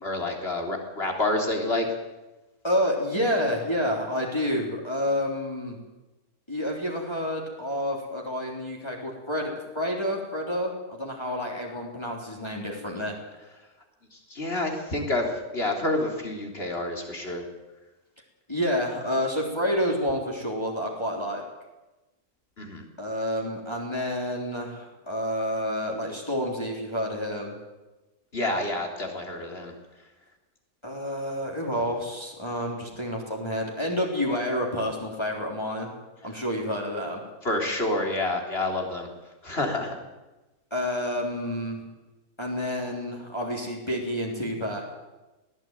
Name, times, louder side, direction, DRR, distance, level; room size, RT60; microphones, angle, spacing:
voice 1, 0.0-1.9 14.1-17.4 22.6-22.8 28.3-29.7 37.4-39.1 39.4-40.0, left 2 dB, 40° left, 2 dB, 3.9 m, -28 dB
voice 2, 2.6-5.8 6.5-13.2 18.5-21.4 23.0-27.5 30.8-35.9 36.2-37.2 40.7-41.8 42.4-44.9, equal, 20° left, -1 dB, 3.8 m, -29 dB
20.5 x 16.5 x 9.2 m, 1.1 s
omnidirectional pair, 1.5 m